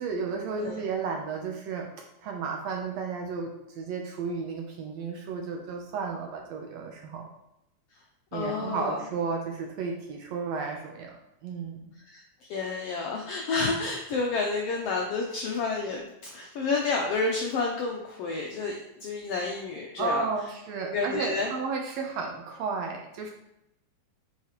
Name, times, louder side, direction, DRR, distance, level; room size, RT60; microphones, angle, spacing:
voice 1, 0.0-1.9 2.2-7.3 8.3-11.1 11.4-11.9 20.0-23.3, right 5 dB, 75° right, 1 dB, 1.7 m, -33 dB
voice 2, 8.3-9.0 12.1-12.2 12.5-20.2 20.8-21.5, left 4 dB, 80° left, 0 dB, 1.4 m, -30 dB
8.0 x 4.8 x 3.0 m, 0.84 s
omnidirectional pair, 3.5 m